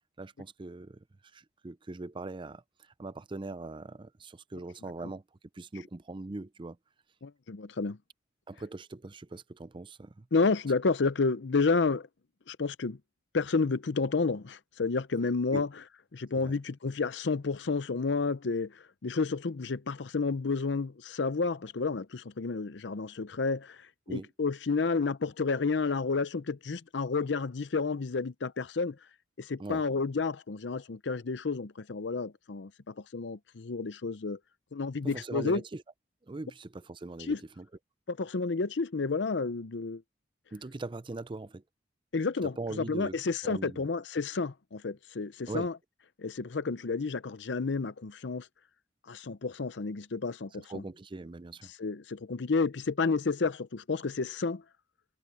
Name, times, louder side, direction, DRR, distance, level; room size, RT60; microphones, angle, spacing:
voice 1, 0.2-1.0 1.3-2.6 3.0-5.2 5.5-6.8 8.5-10.3 15.5-15.6 16.4-16.5 24.1-24.3 29.6-29.8 35.0-35.8 36.3-37.7 40.5-41.6 42.4-43.2 43.4-43.9 45.5-45.7 50.7-51.7, right 2 dB, 25° right, 0.5 m, -40 dB
voice 2, 7.2-8.0 10.3-12.1 12.5-13.0 13.3-15.7 16.1-29.0 29.4-34.4 34.7-35.6 37.2-37.4 38.1-40.0 42.1-45.8 46.2-48.5 49.1-50.8 51.7-54.6, left 4 dB, 70° left, 0.7 m, -31 dB
head